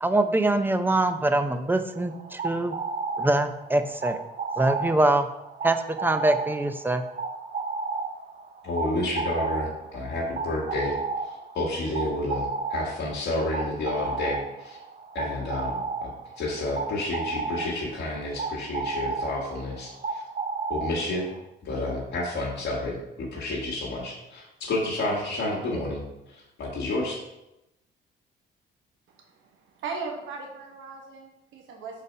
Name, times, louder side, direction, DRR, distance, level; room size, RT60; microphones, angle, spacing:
voice 1, 0.0-2.8 3.2-4.2 4.6-5.3 5.6-7.0, right 2 dB, 10° right, 9 dB, 0.5 m, -24 dB
sound 1, 2.0-21.4, right 4 dB, 45° right, 0.8 m, -33 dB
voice 2, 8.6-11.0 11.5-14.8 15.1-16.1 16.4-20.2 20.7-21.3 21.6-27.2, left 2 dB, 65° left, -4 dB, 1.5 m, -30 dB
voice 3, 29.8-32.0, right 4 dB, 80° right, 1 dB, 1.2 m, -37 dB
5.4 x 4.1 x 5.2 m, 0.92 s
cardioid pair, 90°, 20 cm